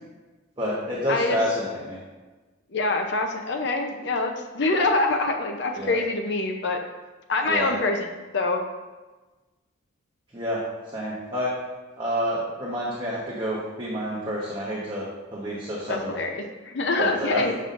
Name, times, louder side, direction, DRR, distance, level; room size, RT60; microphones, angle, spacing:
voice 1, 0.6-2.0 5.7-6.0 7.5-7.7 10.3-10.6 10.9-11.5 12.0-15.1 15.3-16.2 17.0-17.4, equal, 25° right, -7 dB, 1.0 m, -28 dB
voice 2, 1.1-1.4 2.7-6.8 7.3-8.1 8.3-8.6 15.9-17.5, left 3 dB, 60° left, 3 dB, 0.6 m, -25 dB
7.0 x 5.4 x 2.5 m, 1.2 s
head